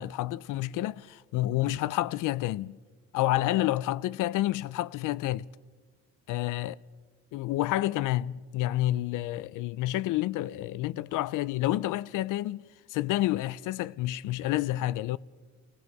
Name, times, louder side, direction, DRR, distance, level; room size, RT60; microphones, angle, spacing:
voice 1, 0.0-2.8 3.1-5.5 6.3-6.8 7.3-15.2, left 15 dB, 90° left, 0.5 m, -29 dB
26.0 x 18.5 x 5.4 m
cardioid pair, 90°, 30 cm